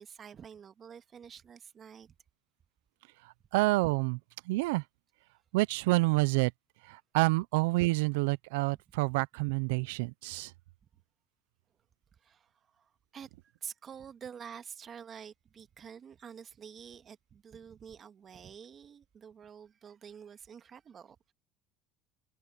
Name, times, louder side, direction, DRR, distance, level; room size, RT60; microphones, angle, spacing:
voice 1, 0.0-2.1 12.2-13.3 13.6-21.2, right 7 dB, 35° right, 1.6 m, -48 dB
voice 2, 3.5-4.2 4.5-4.8 5.5-6.5 7.1-10.5, right 23 dB, 90° right, 0.4 m, -28 dB
supercardioid pair, 110°, 0 cm